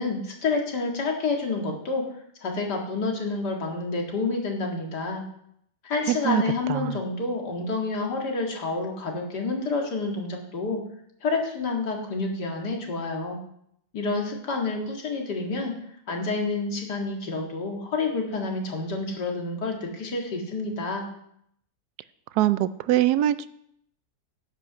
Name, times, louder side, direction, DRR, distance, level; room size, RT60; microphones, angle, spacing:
voice 1, 0.0-2.0 2.4-5.2 5.8-10.8 11.2-13.4 13.9-15.7 16.1-21.1, left 3 dB, 85° left, 1 dB, 2.5 m, -28 dB
voice 2, 6.1-6.4 6.7-7.0 22.4-23.5, right 13 dB, 80° right, 15 dB, 1.1 m, -23 dB
9.9 x 8.4 x 6.1 m, 0.73 s
omnidirectional pair, 1.7 m